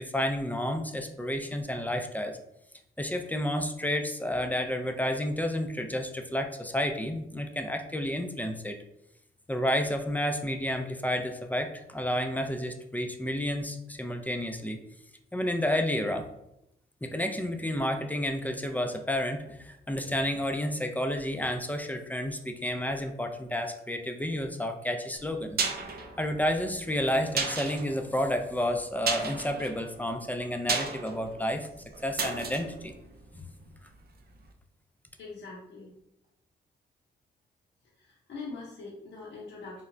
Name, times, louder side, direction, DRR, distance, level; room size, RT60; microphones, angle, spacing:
voice 1, 0.0-2.4 3.0-8.8 9.5-14.8 15.3-16.3 17.0-25.6 26.2-31.7 32.0-32.9 33.3-33.5, left 1 dB, 10° left, 5 dB, 0.4 m, -30 dB
sound 1, 25.2-34.0 34.3-34.4, right 4 dB, 50° right, 0.5 m, -35 dB
voice 2, 35.2-35.9 38.0-39.8, left 3 dB, 65° left, -5 dB, 0.6 m, -42 dB
3.0 x 2.1 x 2.4 m, 0.82 s
supercardioid pair, 45°, 21 cm